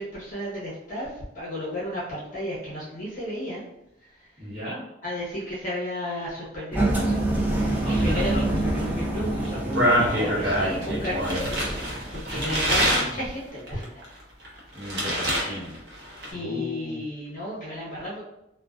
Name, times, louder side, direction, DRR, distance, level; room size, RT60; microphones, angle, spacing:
voice 1, 0.0-3.6 4.0-4.3 5.0-7.2 7.6-8.4 9.8-11.7 12.1-14.0 14.7-14.8 16.3-18.2, left 1 dB, 45° left, -8 dB, 0.7 m, -33 dB
voice 2, 4.4-4.8 7.8-10.8 12.2-13.2 14.7-15.8 16.3-17.0, equal, 30° right, -13 dB, 1.0 m, -34 dB
Engine, 6.7-12.5, right 1 dB, 10° right, 0.4 m, -27 dB
sound 1, 9.4-13.1 13.7-15.5 15.7-16.3, equal, 60° right, 0.7 m, -25 dB
2.4 x 2.2 x 2.3 m, 0.86 s
head